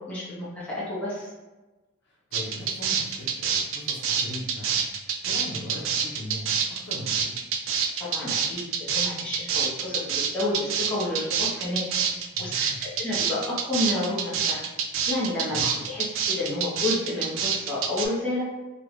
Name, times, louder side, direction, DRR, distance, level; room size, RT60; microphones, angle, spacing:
voice 1, 0.1-1.3 8.0-11.9 12.4-14.6 15.1-18.5, left 2 dB, 5° left, -9 dB, 1.0 m, -30 dB
voice 2, 2.0-4.8 5.2-7.3 12.3-12.8 15.5-15.8, equal, 60° left, -4 dB, 0.8 m, -39 dB
sound 1, 2.3-18.0, right 7 dB, 80° right, 0.4 m, -26 dB
3.4 x 2.3 x 3.1 m, 1.2 s
head